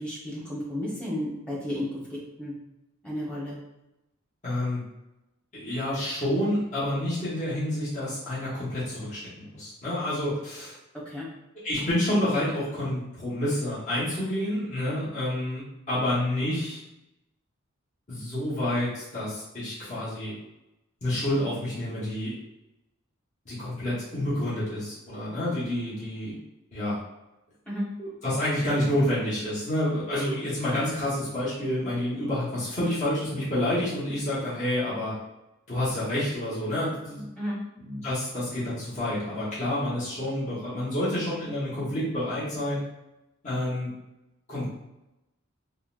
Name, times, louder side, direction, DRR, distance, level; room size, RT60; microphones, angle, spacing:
voice 1, 0.0-2.0 2.4-2.5 3.0-3.6 11.0-11.3 27.7-27.8 37.4-37.6, equal, 5° left, -7 dB, 1.0 m, -32 dB
voice 2, 4.4-4.8 5.5-10.7 11.6-16.8 18.1-20.3 21.0-22.3 23.4-26.3 26.7-27.0 28.0-35.1 35.7-37.2 37.8-42.8 43.4-43.9 44.5-44.7, left 1 dB, 35° left, -10 dB, 1.1 m, -28 dB
3.7 x 2.1 x 2.4 m, 0.94 s
head